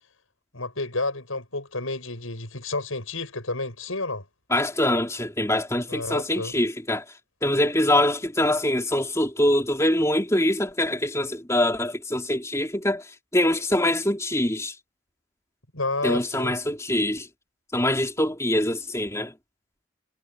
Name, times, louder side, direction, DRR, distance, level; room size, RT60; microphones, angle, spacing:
voice 1, 0.5-4.2 5.9-6.5 15.7-16.5, left 2 dB, 75° left, 7.8 m, -30 dB
voice 2, 4.5-7.0 7.4-14.8 16.0-17.3 17.7-19.3, left 1 dB, 15° left, 3.8 m, -24 dB
head